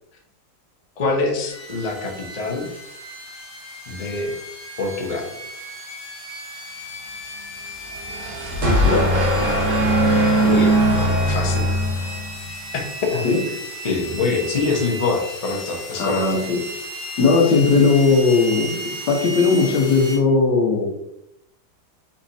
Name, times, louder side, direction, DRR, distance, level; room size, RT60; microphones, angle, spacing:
voice 1, 1.0-2.7 3.9-4.4 4.8-5.3 10.4-11.7 11.9-12.0 12.7-13.3 13.8-16.4, left 3 dB, 40° left, 1 dB, 0.5 m, -25 dB
sound 1, 1.5-20.2, equal, 10° left, 0.9 m, -35 dB
sound 2, 7.9-12.5, right 1 dB, 50° right, 1.1 m, -19 dB
voice 2, 8.6-9.1 13.2-13.4 16.0-16.6 17.2-18.8 19.1-20.9, left 4 dB, 75° left, 0 dB, 1.6 m, -18 dB
4.3 x 4.1 x 2.7 m, 0.79 s
omnidirectional pair, 1.9 m